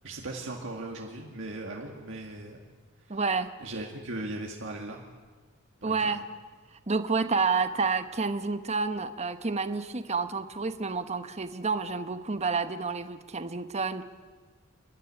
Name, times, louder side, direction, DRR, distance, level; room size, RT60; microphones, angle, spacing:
voice 1, 0.0-2.6 3.1-3.2 3.6-5.0 5.8-6.0, right 2 dB, 65° right, 0 dB, 2.2 m, -38 dB
voice 2, 3.1-3.5 5.8-6.2 6.9-14.0, right 4 dB, 35° right, 10 dB, 1.0 m, -29 dB
28.5 x 12.0 x 10.0 m, 1.4 s
head